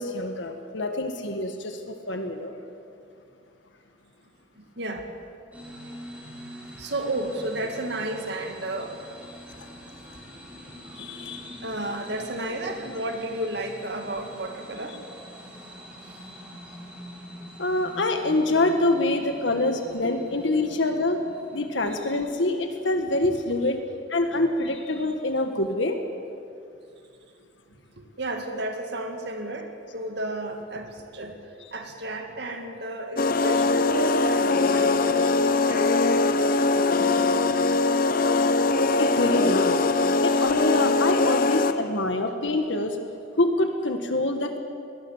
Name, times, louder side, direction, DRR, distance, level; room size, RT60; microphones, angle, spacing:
voice 1, 0.0-2.5 9.6-9.7 10.8-11.6 17.6-21.2 21.5-23.8 24.1-26.0 39.0-39.9 40.2-43.0 43.4-44.6, left 2 dB, 70° left, 6 dB, 1.6 m, -26 dB
voice 2, 4.5-5.1 6.8-9.0 11.6-15.0 16.0-16.2 23.2-23.6 28.0-37.5, right 1 dB, 60° right, 4 dB, 2.2 m, -33 dB
sound 1, 5.5-21.8, equal, 10° right, 4.2 m, -44 dB
sound 2, 33.2-41.9, left 3 dB, 45° left, 0.8 m, -22 dB
23.0 x 19.0 x 7.3 m, 2.5 s
head